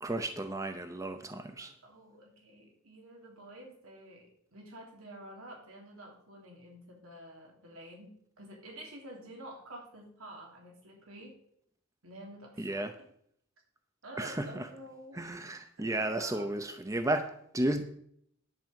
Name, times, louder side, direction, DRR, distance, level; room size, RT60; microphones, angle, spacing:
voice 1, 0.0-1.7 12.6-12.9 14.2-14.7 15.1-17.8, right 1 dB, 15° right, 7 dB, 0.7 m, -33 dB
voice 2, 1.8-11.4 12.0-13.1 14.0-15.3 15.8-16.5, right 1 dB, 80° right, 0 dB, 3.1 m, -49 dB
10.5 x 5.5 x 7.7 m, 0.67 s
head